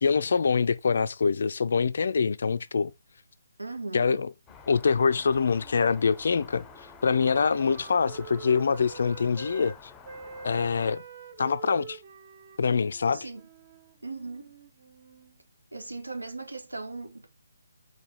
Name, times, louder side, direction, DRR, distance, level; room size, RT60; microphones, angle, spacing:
voice 1, 0.0-2.9 3.9-4.3 4.7-6.6 7.0-9.9 10.4-11.0 11.4-12.0 12.6-13.3, left 5 dB, 55° left, 0.4 m, -25 dB
voice 2, 3.6-4.2 13.1-13.4 14.0-14.5 15.7-17.3, right 3 dB, 80° right, 1.7 m, -38 dB
sound 1, 4.5-11.0, left 6 dB, 10° left, 0.7 m, -50 dB
Wind instrument woodwind instrument, 4.8-9.8 10.0-15.3, right 5 dB, 35° right, 1.1 m, -47 dB
4.7 x 4.0 x 5.5 m
figure-of-eight pair, 140°, 0 cm